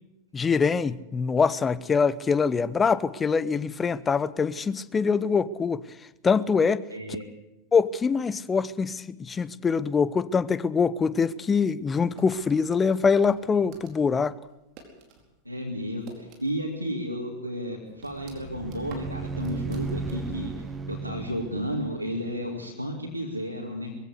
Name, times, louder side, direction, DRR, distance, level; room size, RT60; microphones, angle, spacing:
voice 1, 0.3-5.8 6.2-6.8 7.7-14.3, left 5 dB, 15° left, 18 dB, 0.7 m, -24 dB
voice 2, 6.9-7.2 15.4-20.6 20.9-23.9, equal, 90° left, -1 dB, 2.4 m, -32 dB
sound 1, 12.2-15.3 15.6-16.8 17.1-17.2 17.6-20.5, right 4 dB, 40° right, 4.6 m, -51 dB
sound 2, 18.0-22.7, right 4 dB, 20° right, 1.3 m, -36 dB
21.0 x 16.0 x 8.3 m, 0.94 s
figure-of-eight pair, 90°, 0 cm